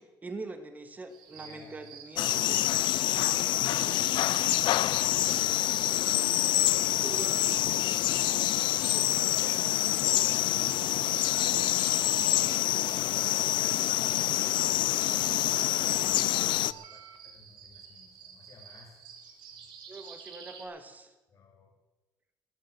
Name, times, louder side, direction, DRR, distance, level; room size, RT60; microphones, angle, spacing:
voice 1, 0.0-2.7 7.0-7.6 8.9-9.4 19.9-21.1, right 2 dB, 20° right, 7 dB, 1.6 m, -43 dB
sound 1, 1.1-20.7, right 6 dB, 70° right, 3.5 m, -49 dB
voice 2, 1.3-2.0 3.1-6.2 7.9-10.6 15.7-19.0 19.5-19.7 21.3-21.7, left 3 dB, 40° left, 0 dB, 2.6 m, -55 dB
sound 2, 2.2-16.7, left 14 dB, 70° left, 0.4 m, -26 dB
sound 3, 2.4-17.2, right 11 dB, 90° right, 1.2 m, -50 dB
18.5 x 8.0 x 8.1 m, 1.1 s
cardioid pair, 150°, 8 cm